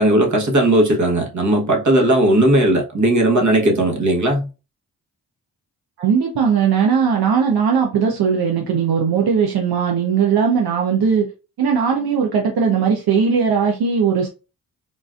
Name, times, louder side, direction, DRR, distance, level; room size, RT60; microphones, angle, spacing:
voice 1, 0.0-4.5, right 1 dB, 50° right, 1.3 m, -16 dB
voice 2, 6.0-11.3 11.6-14.3, right 6 dB, 75° right, 0.8 m, -18 dB
3.8 x 2.5 x 2.4 m
cardioid pair, 55°, 38 cm